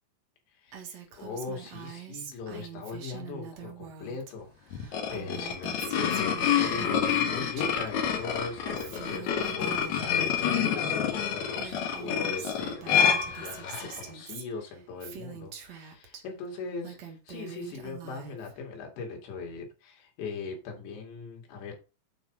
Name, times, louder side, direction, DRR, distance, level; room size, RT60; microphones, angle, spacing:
voice 1, 0.6-4.5 4.8-21.7, left 4 dB, 85° left, 4.6 m, -40 dB
Female speech woman speaking, 0.7-4.3 4.6-7.9 8.2-10.6 11.2-11.3 11.5-16.2 16.6-18.6, right 8 dB, 55° right, 2.2 m, -44 dB
sound 1, 4.7-14.0, left 7 dB, 55° left, 2.1 m, -28 dB
8.9 x 4.8 x 5.0 m
omnidirectional pair, 5.0 m